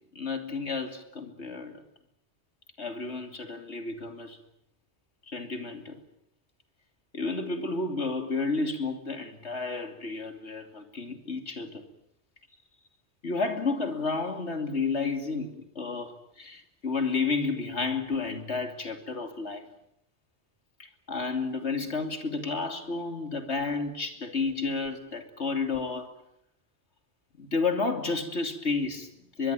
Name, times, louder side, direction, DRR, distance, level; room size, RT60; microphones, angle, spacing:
voice 1, 0.1-1.8 2.8-4.4 5.3-6.0 7.1-11.8 13.2-19.6 20.8-26.1 27.4-29.5, left 4 dB, 80° left, 7 dB, 3.1 m, -31 dB
23.5 x 22.0 x 9.1 m, 0.75 s
omnidirectional pair, 1.1 m